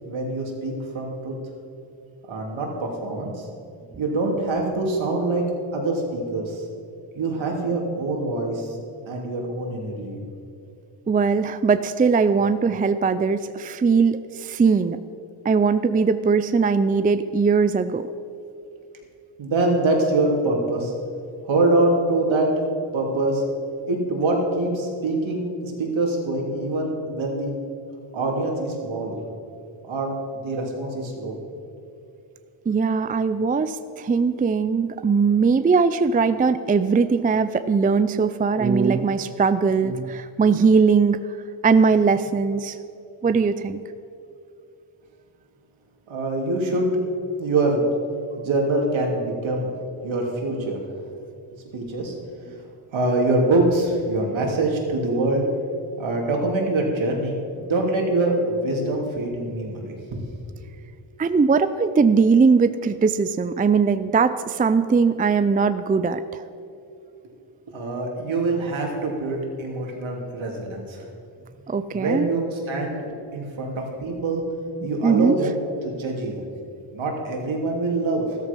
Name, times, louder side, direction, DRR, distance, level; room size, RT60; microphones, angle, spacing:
voice 1, 0.0-1.3 2.3-3.5 4.0-5.5 5.7-6.6 7.1-8.8 9.1-10.2 19.4-20.9 21.4-22.5 22.9-23.4 23.8-27.5 28.1-29.2 29.8-31.4 46.1-46.9 47.4-47.8 48.4-49.7 50.0-50.8 51.6-52.1 52.9-55.4 56.0-60.2 67.7-71.1 71.9-74.4 74.8-76.4 76.9-78.3, right 2 dB, 65° right, 0 dB, 3.1 m, -24 dB
voice 2, 11.1-15.0 15.4-18.1 32.7-41.2 41.6-42.8 43.2-43.8 61.2-66.5 71.7-72.3 74.8-75.4, right 5 dB, 20° right, 12 dB, 0.4 m, -20 dB
13.5 x 13.5 x 5.4 m, 2.7 s
cardioid pair, 100°, 49 cm